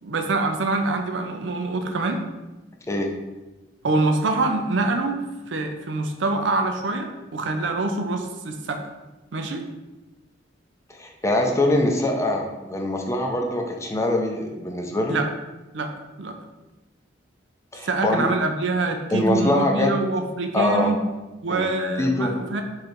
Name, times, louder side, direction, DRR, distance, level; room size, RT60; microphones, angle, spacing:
voice 1, 0.0-2.2 3.8-8.8 9.3-9.6 15.1-15.3 15.7-15.9 16.2-16.4 17.8-21.0 21.4-22.6, right 2 dB, 75° right, 5 dB, 0.5 m, -25 dB
voice 2, 11.0-15.2 17.7-18.3 19.1-19.9 20.5-20.9 21.5-21.7 22.0-22.3, left 1 dB, 15° left, 2 dB, 0.5 m, -23 dB
3.8 x 3.2 x 4.4 m, 1.1 s
head